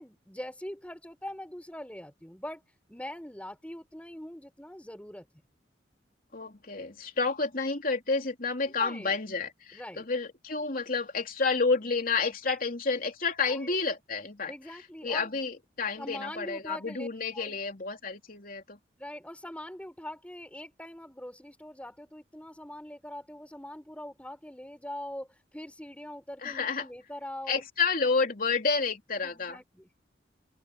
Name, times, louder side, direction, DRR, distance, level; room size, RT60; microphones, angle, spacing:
voice 1, 0.0-2.6 2.9-5.2 8.8-9.2 9.7-10.1 13.5-13.8 14.5-15.3 16.0-17.1 17.3-17.6 19.0-27.6 29.2-30.0, left 1 dB, 5° left, 5.2 m, -42 dB
voice 2, 6.3-14.5 15.0-18.8 26.4-26.9 27.5-29.6, left 4 dB, 50° left, 3.2 m, -30 dB
open air
head